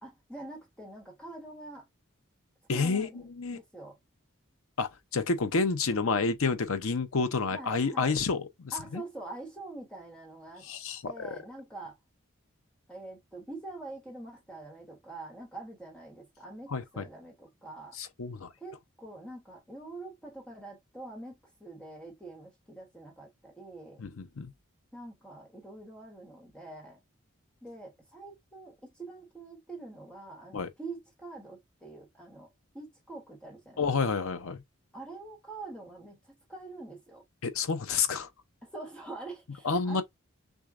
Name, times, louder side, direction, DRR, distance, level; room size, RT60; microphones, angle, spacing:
voice 1, 0.0-1.9 2.7-4.0 7.5-8.2 8.7-10.7 11.0-12.0 12.9-18.0 18.6-24.0 24.9-27.0 27.6-33.9 34.1-34.2 34.9-37.2 38.6-40.0, right 2 dB, 5° left, 1.2 m, -45 dB
voice 2, 2.7-3.6 4.8-9.0 10.6-11.1 16.7-17.1 17.9-18.5 24.0-24.5 30.5-30.7 33.8-34.6 37.4-38.3 39.6-40.0, left 4 dB, 85° left, 0.7 m, -29 dB
6.2 x 2.2 x 2.5 m
head